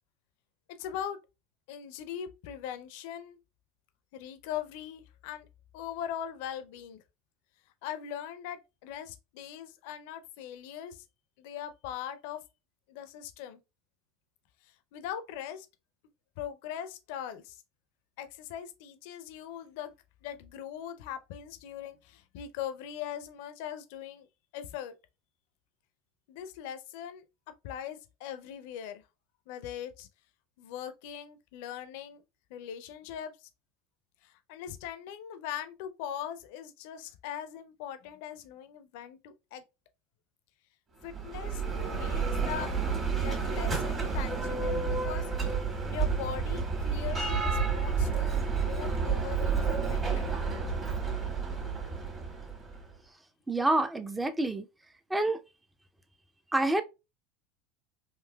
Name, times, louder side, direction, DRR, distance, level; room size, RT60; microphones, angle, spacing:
voice 1, 0.8-1.2 1.7-3.4 4.1-5.5 5.7-7.0 7.8-11.0 11.4-12.4 12.9-13.6 14.6-15.7 16.4-17.6 18.2-19.9 20.2-24.3 24.5-24.9 26.3-27.2 27.6-29.0 29.5-30.1 30.6-32.2 32.5-33.5 34.2-39.6 41.0-42.7 43.1-45.3 45.9-50.2, left 9 dB, 65° left, 0.5 m, -40 dB
Bell, 41.0-52.8, right 5 dB, 30° right, 1.6 m, -30 dB
voice 2, 53.5-54.7 55.1-55.4 56.5-56.8, right 2 dB, 10° right, 0.5 m, -27 dB
3.7 x 2.6 x 2.2 m
hypercardioid pair, 80°, 0 cm